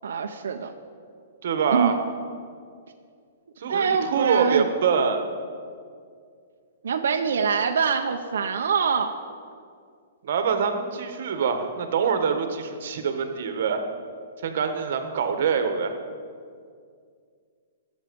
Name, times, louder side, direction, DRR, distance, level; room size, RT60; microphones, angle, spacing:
voice 1, 0.0-0.7 1.7-1.9 3.7-4.7 6.8-9.2, right 6 dB, 85° right, 4 dB, 0.8 m, -24 dB
voice 2, 1.4-2.0 3.6-5.2 10.2-13.8 14.4-16.0, right 6 dB, 55° right, 7 dB, 1.3 m, -25 dB
21.0 x 7.3 x 5.3 m, 2.2 s
hypercardioid pair, 175°, 0 cm